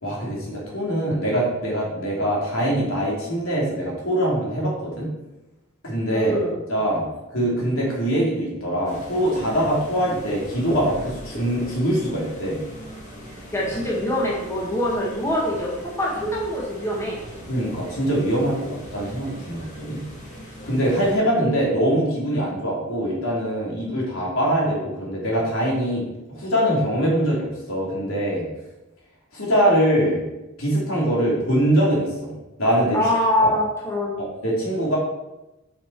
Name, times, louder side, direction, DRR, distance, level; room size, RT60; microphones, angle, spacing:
voice 1, 0.0-5.1 5.8-6.3 6.7-7.0 7.3-12.6 17.5-20.0 20.6-26.0 26.3-28.5 29.3-30.2 30.6-32.3 32.6-33.0 33.4-33.5 34.2-35.0, equal, 75° left, -4 dB, 3.0 m, -23 dB
voice 2, 6.1-6.6 13.5-17.2 32.9-34.2, left 1 dB, 15° left, -4 dB, 1.5 m, -24 dB
sound 1, 8.8-21.2, equal, 35° left, 1.9 m, -38 dB
7.1 x 5.6 x 4.7 m, 1.0 s
head